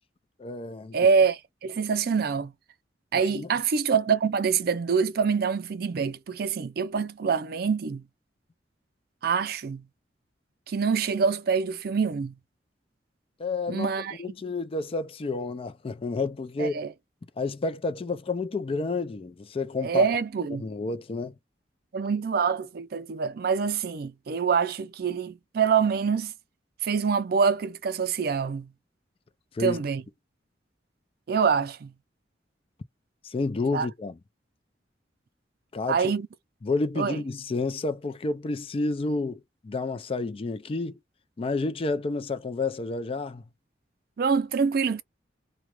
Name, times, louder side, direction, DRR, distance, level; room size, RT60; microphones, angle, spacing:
voice 1, 0.4-1.0 3.3-3.5 13.4-13.9 14.2-16.8 17.4-20.1 20.6-21.3 29.5-29.8 33.2-34.1 35.7-36.1 36.6-40.9 41.4-43.4, left 3 dB, 30° left, 0.4 m, -30 dB
voice 2, 0.9-2.5 3.1-8.0 9.2-9.8 10.7-12.3 13.7-14.2 16.6-16.9 19.8-20.6 21.9-26.3 26.8-28.7 29.6-30.0 31.3-31.9 33.7-33.9 35.9-36.3 37.0-37.2 44.2-45.0, right 6 dB, 55° right, 0.4 m, -25 dB
2.4 x 2.2 x 3.0 m
head